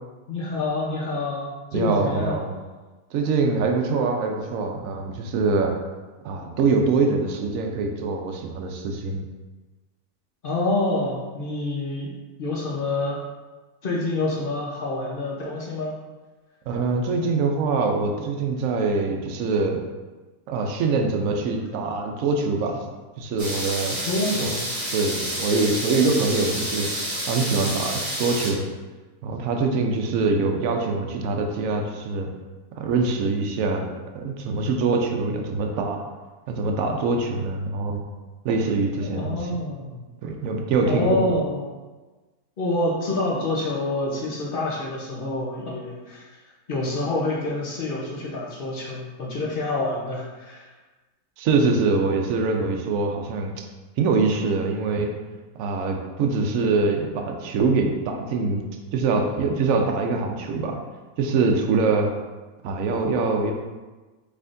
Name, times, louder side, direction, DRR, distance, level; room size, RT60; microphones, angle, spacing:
voice 1, 0.3-2.4 10.4-12.1 12.4-13.2 13.8-15.9 23.9-24.6 39.0-40.0 40.8-41.6 42.6-46.2 46.7-50.6, left 2 dB, 45° left, -3 dB, 0.9 m, -27 dB
voice 2, 1.7-2.5 3.1-5.7 6.2-9.2 16.7-19.8 20.5-22.8 23.2-24.0 24.4-24.5 24.9-26.9 27.3-28.6 29.2-32.3 32.8-33.9 34.1-36.0 36.5-38.0 38.4-39.4 40.2-41.1 51.4-53.6 54.0-55.1 55.6-58.6 58.9-60.8 61.2-62.1 62.6-63.5, right 4 dB, 65° right, 2 dB, 0.9 m, -24 dB
sound 1, 23.4-28.5, equal, 15° right, 0.8 m, -29 dB
5.5 x 3.6 x 2.6 m, 1.2 s
omnidirectional pair, 1.6 m